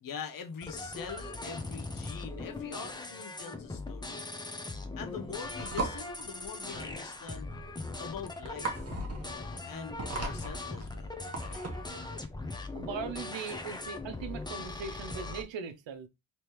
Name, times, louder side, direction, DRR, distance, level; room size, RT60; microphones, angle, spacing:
voice 1, 0.0-4.3 5.0-7.6 8.0-11.2, left 6 dB, 50° left, 0.7 m, -44 dB
sound 1, 0.6-15.4, left 3 dB, 10° left, 0.5 m, -40 dB
sound 2, 5.1-12.0, right 3 dB, 35° right, 1.0 m, -38 dB
voice 2, 12.7-16.1, right 6 dB, 75° right, 0.8 m, -39 dB
3.3 x 3.0 x 2.9 m
cardioid pair, 75°, 45 cm